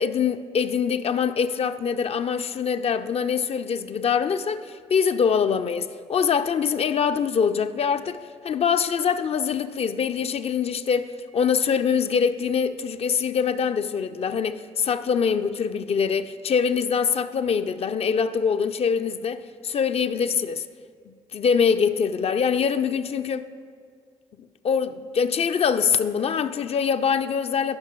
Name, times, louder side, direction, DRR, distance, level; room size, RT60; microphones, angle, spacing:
voice 1, 0.0-8.2 8.4-20.7 21.1-23.5 24.6-27.8, left 6 dB, 45° left, 0.4 m, -24 dB
14.0 x 5.9 x 3.0 m
hypercardioid pair, 40°, 15 cm